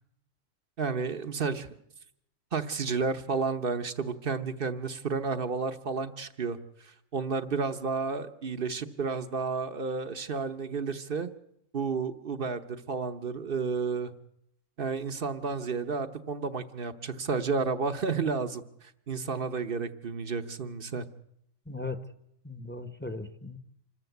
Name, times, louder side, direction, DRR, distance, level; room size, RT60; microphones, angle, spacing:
voice 1, 0.8-1.7 2.5-6.6 6.8-11.3 11.7-14.1 14.8-21.0, right 5 dB, 50° right, 10 dB, 1.1 m, -31 dB
voice 2, 21.7-22.0 22.4-23.6, left 3 dB, 10° left, 10 dB, 1.0 m, -37 dB
26.5 x 14.0 x 8.1 m, 0.75 s
omnidirectional pair, 1.3 m